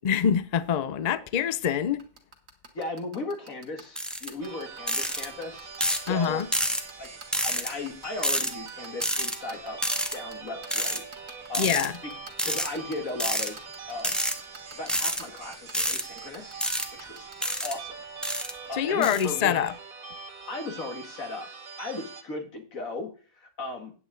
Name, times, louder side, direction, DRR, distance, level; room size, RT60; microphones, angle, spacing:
voice 1, 0.0-2.0 6.1-6.5 11.6-12.0 18.7-19.8, left 8 dB, 60° left, 0.4 m, -25 dB
sound 1, 2.0-17.5, right 4 dB, 65° right, 2.0 m, -45 dB
voice 2, 2.7-5.7 6.0-6.4 7.0-7.1 7.4-9.8 10.1-11.0 11.5-11.8 12.0-12.1 12.4-14.2 14.7-16.6 16.9-17.3 17.6-18.0 18.7-19.6 20.5-21.5 21.8-23.9, left 2 dB, 75° left, 2.3 m, -36 dB
sound 2, 4.0-4.3 4.9-5.3 5.8-6.1 6.5-6.8 7.3-7.7 8.2-8.5 9.0-9.4 9.8-10.1 10.7-11.0 11.5-11.9 12.4-12.7 13.2-13.5 14.0-14.3 14.9-15.2 15.7-16.0 16.6-16.9 17.4-17.7 18.2-18.5 19.0-19.2, equal, ahead, 0.8 m, -28 dB
sound 3, 4.4-22.2, right 5 dB, 85° right, 1.9 m, -43 dB
9.3 x 8.7 x 3.9 m
omnidirectional pair, 1.4 m